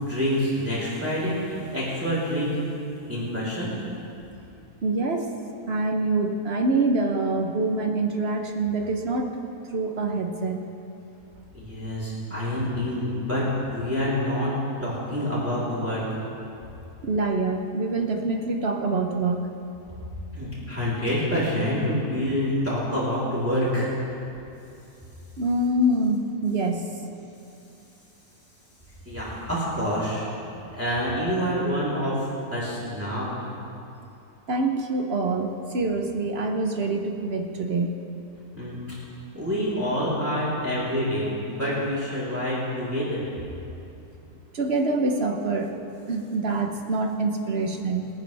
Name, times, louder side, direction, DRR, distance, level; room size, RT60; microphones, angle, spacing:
voice 1, 0.0-2.6 3.1-3.7 11.5-14.5 14.8-16.0 20.3-23.9 29.0-30.3 30.7-33.4 38.6-38.8 39.3-43.2, equal, 10° right, -9 dB, 3.5 m, -27 dB
voice 2, 4.8-5.3 5.7-9.4 9.7-10.6 17.0-19.5 25.4-27.1 34.5-38.0 44.5-45.8 46.1-48.1, right 2 dB, 50° right, 4 dB, 1.0 m, -25 dB
25.0 x 9.3 x 3.4 m, 2.8 s
omnidirectional pair, 1.6 m